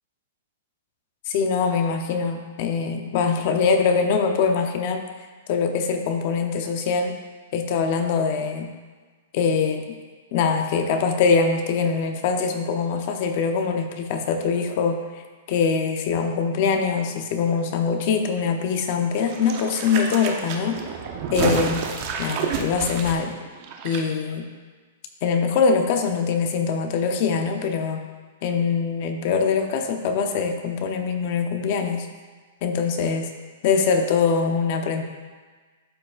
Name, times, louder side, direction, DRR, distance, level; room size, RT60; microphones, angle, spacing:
voice 1, 1.3-5.0 5.5-7.1 7.5-8.7 9.3-9.9 10.3-15.0 15.5-20.8 21.3-21.8 22.2-23.3 23.8-24.4 25.2-28.0 28.4-32.1 32.6-33.3 33.6-35.0, left 5 dB, 40° left, 6 dB, 0.6 m, -23 dB
sound 1, 19.2-24.0 24.3-24.4, right 6 dB, 35° right, 0.7 m, -29 dB
12.0 x 4.9 x 2.4 m, 1.4 s
hypercardioid pair, 165°, 0 cm